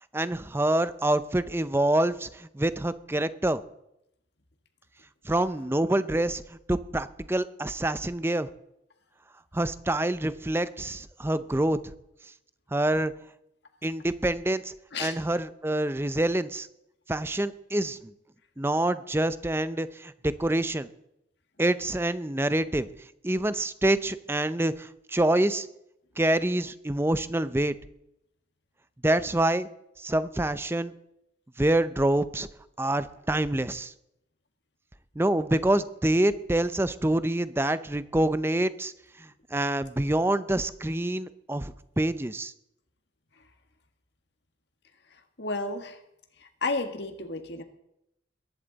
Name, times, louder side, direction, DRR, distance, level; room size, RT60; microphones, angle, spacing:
voice 1, 0.1-3.6 5.2-8.5 9.5-11.9 12.7-13.1 13.8-14.7 15.0-16.7 17.1-18.1 18.6-20.9 21.6-22.9 23.2-25.7 26.2-27.7 29.0-29.7 30.0-30.9 31.6-32.5 32.8-33.9 35.2-38.9 39.2-42.5, right 1 dB, 10° right, 13 dB, 0.5 m, -26 dB
voice 2, 45.4-46.0 46.6-47.6, left 3 dB, 65° left, 5 dB, 1.7 m, -31 dB
22.0 x 11.0 x 4.0 m, 0.81 s
head